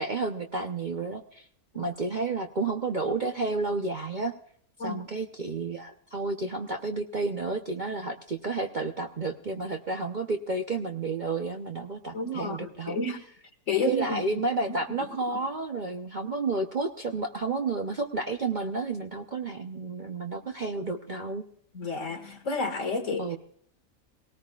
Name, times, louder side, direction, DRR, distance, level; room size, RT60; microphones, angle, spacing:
voice 1, 0.0-1.4 1.7-4.3 4.8-13.0 13.8-21.4 23.2-23.4, right 3 dB, 40° right, 3 dB, 0.8 m, -31 dB
voice 2, 12.1-13.2 13.7-14.5 14.9-15.1 15.3-15.4 21.7-23.2, left 3 dB, 55° left, 5 dB, 2.0 m, -31 dB
19.5 x 18.5 x 2.4 m, 0.64 s
omnidirectional pair, 1.6 m